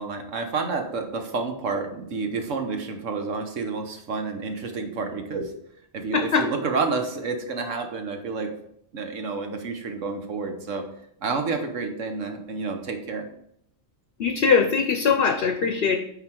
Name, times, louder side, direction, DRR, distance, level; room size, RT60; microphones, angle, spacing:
voice 1, 0.0-5.4 5.9-8.5 8.9-10.8 11.2-13.2, right 4 dB, 80° right, 4 dB, 1.4 m, -29 dB
voice 2, 6.1-6.4 14.2-16.0, left 5 dB, 55° left, 6 dB, 0.8 m, -21 dB
9.2 x 4.1 x 4.5 m, 0.71 s
omnidirectional pair, 1.3 m